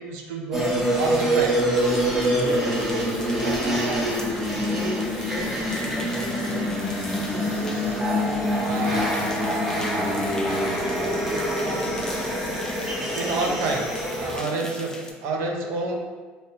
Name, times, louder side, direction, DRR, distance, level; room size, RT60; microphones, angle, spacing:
voice 1, 0.0-1.6 3.4-3.8 8.7-9.1 13.1-13.9 14.2-16.0, right 3 dB, 75° right, 1 dB, 0.5 m, -29 dB
sound 1, 0.5-14.4, equal, 10° right, 0.9 m, -25 dB
sound 2, 1.7-15.1, left 2 dB, 15° left, 0.4 m, -41 dB
voice 2, 2.4-3.1 3.5-6.8 7.1-10.0 10.3-12.6 12.9-13.9 14.2-14.7, right 1 dB, 35° right, -5 dB, 0.6 m, -37 dB
3.2 x 2.7 x 2.8 m, 1.4 s
supercardioid pair, 100°, 4 cm